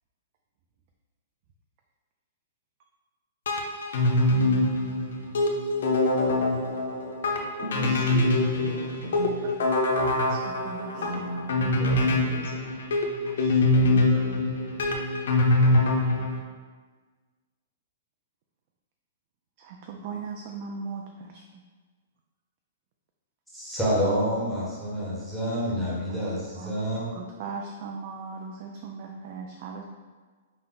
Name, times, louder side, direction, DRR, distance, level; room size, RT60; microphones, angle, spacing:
sound 1, 3.5-16.4, left 2 dB, 75° left, 0.7 m, -24 dB
voice 1, 7.6-8.3 8.5-9.4 10.8-12.7, right 1 dB, 55° right, -2 dB, 1.2 m, -35 dB
voice 2, 10.3-10.9 13.3-13.6 19.6-21.4 26.1-26.3 26.6-26.7 27.1-29.8, right 5 dB, 40° right, 2 dB, 0.4 m, -38 dB
voice 3, 23.5-27.1, equal, ahead, -8 dB, 1.1 m, -28 dB
5.6 x 2.1 x 3.9 m, 1.4 s
hypercardioid pair, 165°, 0 cm